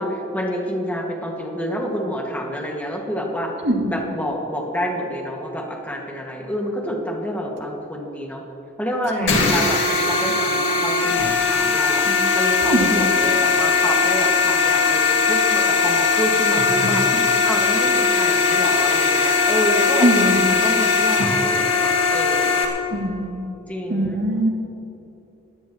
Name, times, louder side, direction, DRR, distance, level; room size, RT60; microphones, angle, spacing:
voice 1, 0.0-3.5 3.8-8.4 8.8-9.8 10.1-12.0 12.3-22.7 23.7-24.3, equal, 10° left, -1 dB, 1.9 m, -28 dB
voice 2, 3.6-3.9 9.2-9.5 12.6-12.9 20.0-20.4 22.9-23.4 23.9-24.5, right 1 dB, 60° right, -1 dB, 2.6 m, -21 dB
sound 1, 9.3-22.7, left 4 dB, 65° left, 2.2 m, -19 dB
21.0 x 16.0 x 3.1 m, 2.9 s
head